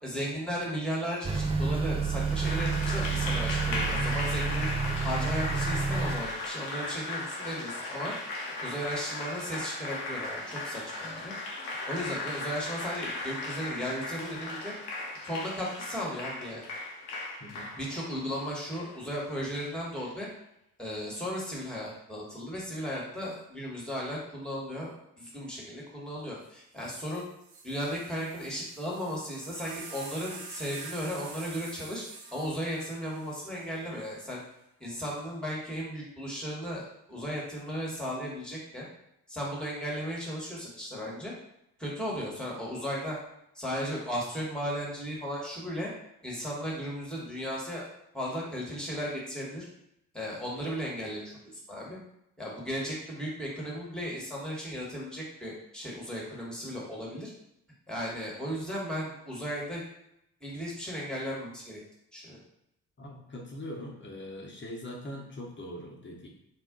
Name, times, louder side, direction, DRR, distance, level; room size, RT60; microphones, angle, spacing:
voice 1, 0.0-4.7 5.0-8.1 8.6-11.3 11.9-14.7 15.2-16.6 17.7-20.3 20.8-27.3 27.6-32.0 32.3-34.4 34.8-38.9 39.3-41.3 41.8-43.2 43.5-45.9 46.2-47.9 48.1-49.7 50.1-52.0 52.4-57.3 57.9-59.8 60.4-61.8 62.1-62.4, equal, ahead, -4 dB, 1.3 m, -35 dB
Motor vehicle (road) / Accelerating revving vroom, 1.2-6.2, right 4 dB, 15° right, 0.4 m, -29 dB
Applause, 2.3-20.1, left 2 dB, 65° left, 0.8 m, -37 dB
voice 2, 17.4-17.7 63.0-66.3, left 1 dB, 25° left, -1 dB, 0.9 m, -41 dB
sound 1, 26.4-26.5 26.8-34.2 35.1-35.5, right 4 dB, 60° right, 0.8 m, -47 dB
2.4 x 2.1 x 3.7 m, 0.80 s
hypercardioid pair, 45°, 43 cm